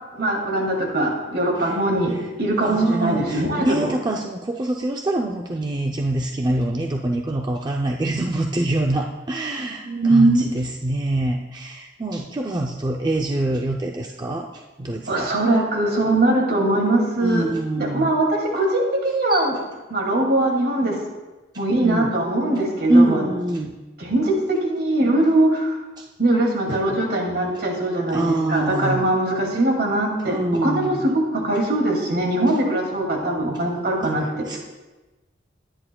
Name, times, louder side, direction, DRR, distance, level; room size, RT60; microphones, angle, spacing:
voice 1, 0.1-3.9 9.8-10.4 15.1-17.5 17.8-19.6 19.9-21.0 21.6-23.2 24.0-25.8 26.2-34.2, right 1 dB, 55° right, 0 dB, 2.4 m, -21 dB
voice 2, 2.6-15.3 17.2-18.1 19.3-19.5 21.5-22.1 22.9-23.8 26.0-26.1 26.7-27.0 28.1-29.1 30.3-31.0 34.0-34.6, right 2 dB, 20° right, 1 dB, 0.5 m, -24 dB
21.0 x 10.0 x 2.3 m, 1.2 s
head